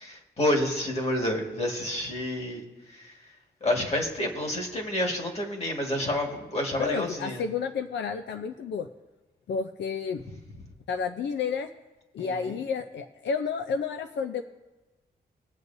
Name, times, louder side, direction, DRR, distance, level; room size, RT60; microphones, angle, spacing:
voice 1, 0.0-2.6 2.9-3.1 3.6-7.4 12.2-12.6, left 1 dB, 35° left, 1 dB, 1.8 m, -29 dB
voice 2, 6.8-8.9 9.5-10.2 10.9-11.7 12.1-14.4, left 6 dB, 75° left, 7 dB, 0.5 m, -31 dB
21.5 x 8.0 x 2.7 m, 1.1 s
wide cardioid pair, 165°, 18 cm